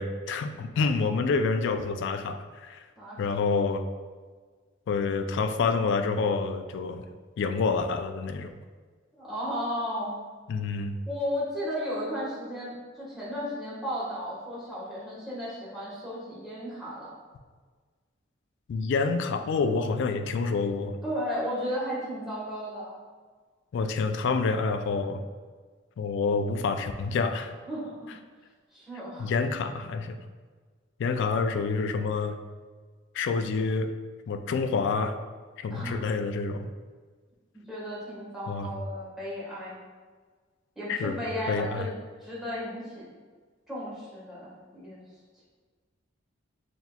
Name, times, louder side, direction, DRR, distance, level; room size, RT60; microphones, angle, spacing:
voice 1, 0.0-2.8 3.2-3.8 4.9-7.0 7.4-8.5 10.5-10.9 18.7-21.0 23.7-25.2 26.0-27.5 29.2-30.2 31.0-32.4 33.1-33.9 34.3-35.2 35.6-36.7 38.5-38.7 40.9-41.2 41.5-41.9, left 4 dB, 65° left, 8 dB, 0.3 m, -28 dB
voice 2, 9.1-10.2 11.1-17.1 21.0-22.9 27.7-28.1 28.7-29.3 35.7-36.1 37.5-39.8 40.7-41.9 42.2-43.1 43.7-45.0, equal, ahead, -9 dB, 1.4 m, -34 dB
6.0 x 2.7 x 2.3 m, 1.5 s
head